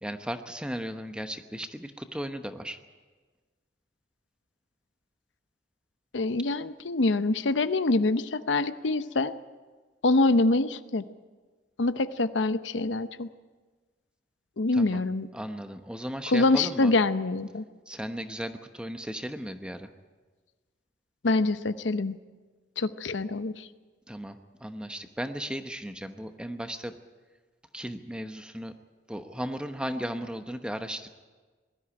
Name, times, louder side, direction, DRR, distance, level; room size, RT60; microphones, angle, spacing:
voice 1, 0.0-2.8 14.7-15.0 15.3-16.9 17.9-19.9 24.1-26.9 27.7-28.7 29.1-31.1, equal, 5° right, 7 dB, 1.0 m, -36 dB
voice 2, 6.1-9.3 10.0-11.1 11.8-13.3 14.6-15.3 16.3-17.6 21.2-22.2 22.8-23.7, left 2 dB, 85° left, 12 dB, 0.8 m, -25 dB
21.0 x 13.5 x 9.8 m, 1.4 s
head